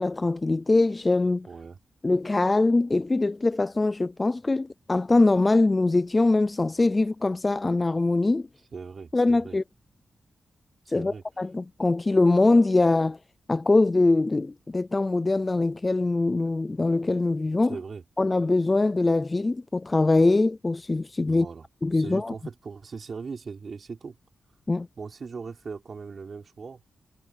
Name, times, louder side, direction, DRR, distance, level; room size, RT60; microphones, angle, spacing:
voice 1, 0.0-1.5 2.0-8.5 9.1-9.6 10.9-13.2 13.5-17.8 18.2-21.5 21.8-22.3 24.7-24.9, left 2 dB, 25° left, 0.4 m, -23 dB
voice 2, 1.5-1.8 8.7-9.6 10.9-11.2 17.7-18.0 21.3-21.6 21.9-24.1 25.0-26.8, right 5 dB, 50° right, 4.5 m, -39 dB
wide cardioid pair, 140°, 0 cm